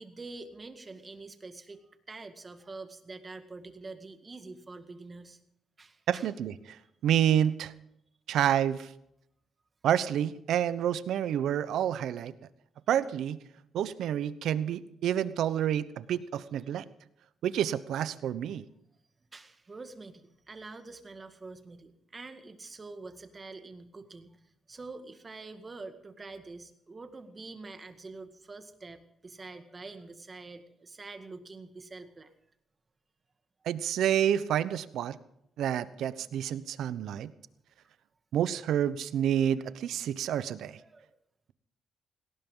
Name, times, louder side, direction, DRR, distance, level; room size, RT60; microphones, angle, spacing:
voice 1, 0.0-1.8 2.1-5.4 5.8-6.3 19.3-24.3 24.7-32.3 40.8-41.1, right 3 dB, 30° right, 7 dB, 2.0 m, -46 dB
voice 2, 6.1-6.8 7.0-7.7 8.3-8.9 9.8-12.3 12.9-13.4 13.7-16.8 17.4-18.6 33.7-35.2 35.6-37.3 38.3-40.8, right 10 dB, 75° right, 15 dB, 0.9 m, -28 dB
18.5 x 18.0 x 3.9 m, 0.76 s
cardioid pair, 90°, 0 cm